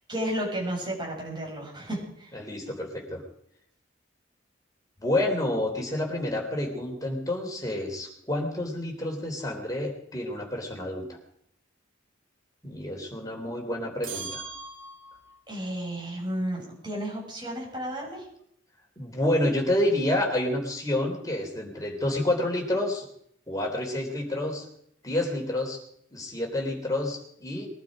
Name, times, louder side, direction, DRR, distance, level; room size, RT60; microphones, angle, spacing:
voice 1, 0.1-2.3 15.5-18.2, right 1 dB, 25° right, -2 dB, 6.5 m, -32 dB
voice 2, 2.3-3.2 5.0-11.0 12.6-14.4 19.0-23.1 23.5-24.6 25.0-25.8 26.1-27.7, left 1 dB, 20° left, 1 dB, 3.7 m, -29 dB
sound 1, 14.0-15.4, right 4 dB, 85° right, 3.6 m, -39 dB
22.0 x 12.0 x 5.1 m, 0.68 s
head